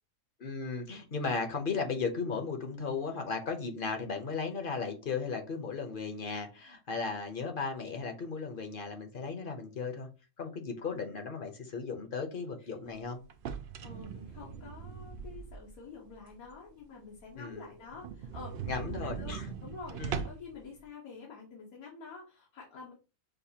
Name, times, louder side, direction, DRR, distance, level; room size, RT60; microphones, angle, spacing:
voice 1, 0.4-10.1 10.4-13.2 17.4-17.7 18.7-19.5 20.0-20.2, left 4 dB, 45° left, 0.8 m, -36 dB
voice 2, 12.6-13.1 13.8-22.9, left 4 dB, 80° left, 1.5 m, -48 dB
sound 1, 13.3-15.9 16.3-16.4 16.8-16.9 17.2-17.3 17.5-17.6 17.9-20.6, right 6 dB, 85° right, 0.4 m, -40 dB
6.5 x 2.4 x 2.8 m
omnidirectional pair, 1.5 m